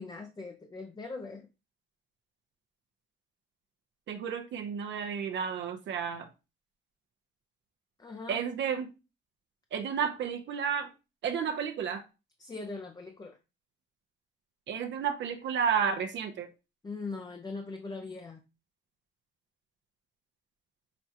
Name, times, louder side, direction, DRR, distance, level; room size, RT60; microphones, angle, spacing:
voice 1, 0.0-1.5 8.0-8.4 12.4-13.4 16.8-18.4, left 3 dB, 20° left, 4 dB, 0.5 m, -40 dB
voice 2, 4.1-6.3 8.3-8.9 9.7-10.9 11.2-12.0 14.7-16.5, right 7 dB, 65° right, 5 dB, 0.6 m, -31 dB
6.0 x 2.2 x 2.8 m, 0.28 s
cardioid pair, 90°, 20 cm